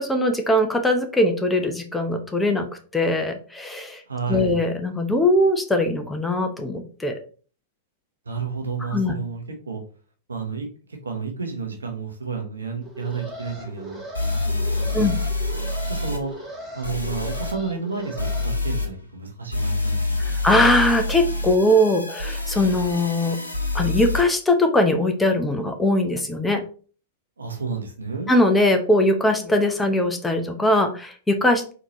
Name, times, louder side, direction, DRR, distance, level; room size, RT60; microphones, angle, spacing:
voice 1, 0.0-2.7 2.9-4.0 4.3-7.1 8.9-9.1 14.9-15.1 20.2-23.4 23.7-26.6 28.3-31.7, left 1 dB, 10° left, 4 dB, 0.6 m, -21 dB
voice 2, 4.1-4.6 8.3-9.8 10.3-10.7 11.0-14.0 14.3-15.1 15.9-16.3 16.7-20.4 27.4-28.3, right 4 dB, 75° right, 4 dB, 0.9 m, -31 dB
Alarm, 12.8-18.5, right 1 dB, 10° right, 1.1 m, -38 dB
sound 1, 13.5-13.6 14.1-16.2 16.8-17.5 18.2-18.9 19.5-24.2, left 2 dB, 90° left, 0.7 m, -26 dB
4.1 x 2.8 x 3.0 m, 0.39 s
figure-of-eight pair, 100°, 0 cm